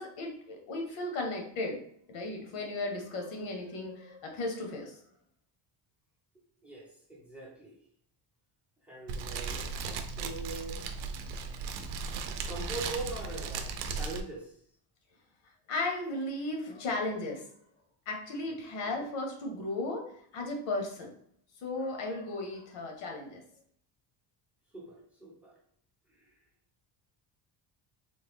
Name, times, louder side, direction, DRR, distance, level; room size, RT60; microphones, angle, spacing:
voice 1, 0.0-1.8 2.1-5.0 15.7-17.5 18.1-21.1 21.6-23.4, left 2 dB, 85° left, 2 dB, 1.1 m, -35 dB
voice 2, 6.6-7.8 8.8-11.0 12.5-14.6 18.8-19.1 24.7-25.6 26.1-26.4, right 2 dB, 5° right, -1 dB, 0.6 m, -42 dB
Fire, 9.1-14.2, right 5 dB, 70° right, 0.6 m, -36 dB
3.5 x 2.2 x 3.5 m, 0.66 s
cardioid pair, 160°, 47 cm